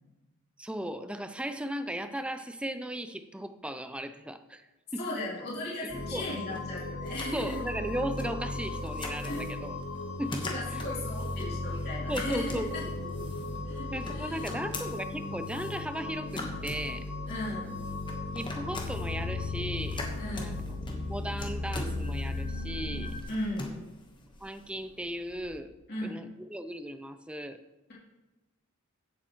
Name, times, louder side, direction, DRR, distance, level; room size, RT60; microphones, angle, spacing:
voice 1, 0.6-4.7 4.9-5.1 6.1-6.3 6.5-6.6 7.3-9.7 10.2-10.5 10.7-10.8 12.1-12.7 13.2-13.3 13.9-17.1 18.3-20.0 20.4-20.5 21.1-23.2 24.4-25.7 26.0-27.6, right 1 dB, 5° right, 10 dB, 0.4 m, -36 dB
voice 2, 5.0-7.6 9.2-9.5 10.4-12.8 13.6-14.5 17.3-17.8 20.2-20.5 23.3-23.7 25.9-26.2, left 1 dB, 45° left, -7 dB, 2.9 m, -37 dB
sound 1, 5.9-23.2, left 2 dB, 90° left, 2.3 m, -36 dB
sound 2, 6.0-25.6, left 2 dB, 20° left, 1.2 m, -44 dB
15.5 x 7.4 x 3.1 m, 1.0 s
head